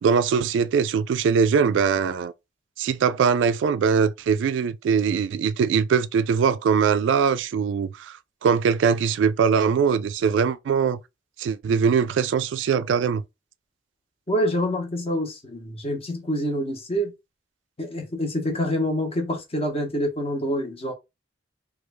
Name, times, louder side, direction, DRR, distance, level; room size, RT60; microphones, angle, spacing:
voice 1, 0.0-2.3 2.8-11.0 11.4-13.2, right 6 dB, 80° right, 0.3 m, -22 dB
voice 2, 14.3-17.1 17.8-20.9, equal, 35° left, 0.9 m, -26 dB
3.1 x 2.3 x 3.3 m
head